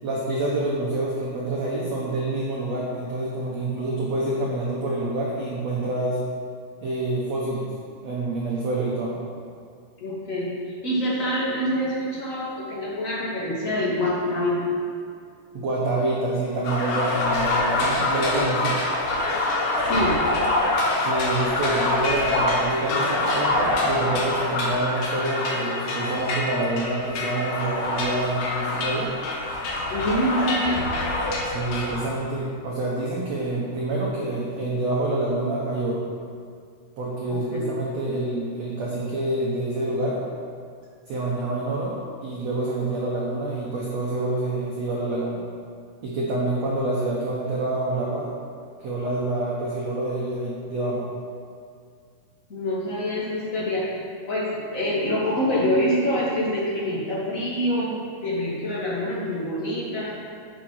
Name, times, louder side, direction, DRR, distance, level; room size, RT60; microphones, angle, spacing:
voice 1, 0.0-6.2 6.8-7.7 8.0-9.2 15.5-18.8 21.0-29.1 31.4-36.1 37.0-40.2 41.1-41.9 42.2-45.4 46.0-48.3 48.8-51.1, right 2 dB, 90° right, -4 dB, 1.4 m, -27 dB
voice 2, 10.0-10.5 10.8-14.7 19.9-20.2 29.9-30.9 37.3-37.6 52.5-53.9 54.3-57.9 58.2-60.1, equal, 35° left, -7 dB, 1.3 m, -25 dB
sound 1, 16.6-32.0, left 2 dB, 60° left, 2.3 m, -25 dB
9.6 x 6.9 x 5.7 m, 2.2 s
omnidirectional pair, 4.9 m